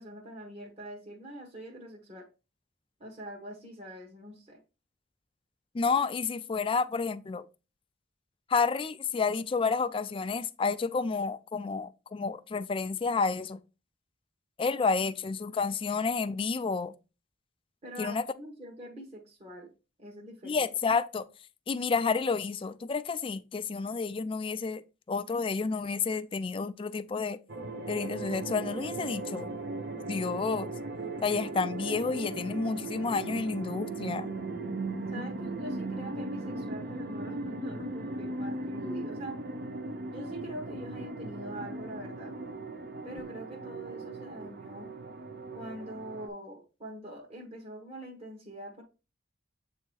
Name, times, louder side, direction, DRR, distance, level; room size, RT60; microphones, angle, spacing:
voice 1, 0.0-2.2 3.0-4.6 17.8-19.7 20.0-20.6 35.1-39.4 40.1-42.3 43.0-44.9 45.5-48.8, right 1 dB, 30° right, 1.1 m, -44 dB
voice 2, 5.7-7.5 8.5-13.6 14.6-16.9 18.0-18.2 20.4-21.3 21.7-24.8 25.1-27.4 27.9-29.5 30.1-30.7 31.2-34.3, left 4 dB, 25° left, 0.3 m, -30 dB
sound 1, 27.5-46.3, right 2 dB, 55° right, 0.7 m, -38 dB
7.6 x 2.8 x 4.5 m
head